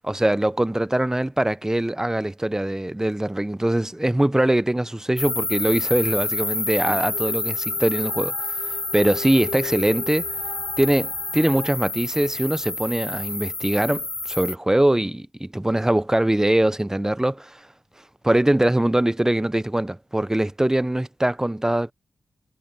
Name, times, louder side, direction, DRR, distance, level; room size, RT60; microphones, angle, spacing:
voice 1, 0.0-8.3 8.9-10.3 10.8-17.6 18.2-21.9, right 1 dB, 10° right, 0.7 m, -22 dB
sound 1, 5.2-14.5, left 2 dB, 25° left, 1.3 m, -29 dB
sound 2, 6.6-11.7, left 6 dB, 75° left, 6.9 m, -39 dB
cardioid pair, 50°, 5 cm